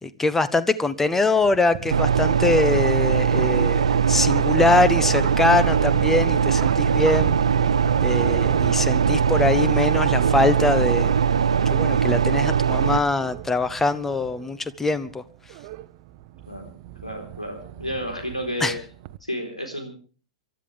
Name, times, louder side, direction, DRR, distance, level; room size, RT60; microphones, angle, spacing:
voice 1, 0.0-7.4 8.0-11.2 11.7-15.2 18.6-18.7, left 3 dB, 10° left, 14 dB, 1.1 m, -23 dB
sound 1, 1.1-19.2, right 13 dB, 40° right, 1.0 m, -37 dB
sound 2, 1.9-13.0, right 7 dB, 70° right, 0.8 m, -20 dB
voice 2, 17.0-18.8 19.2-19.9, equal, 90° left, 3 dB, 4.1 m, -31 dB
28.0 x 13.0 x 3.5 m, 0.38 s
figure-of-eight pair, 100°, 3 cm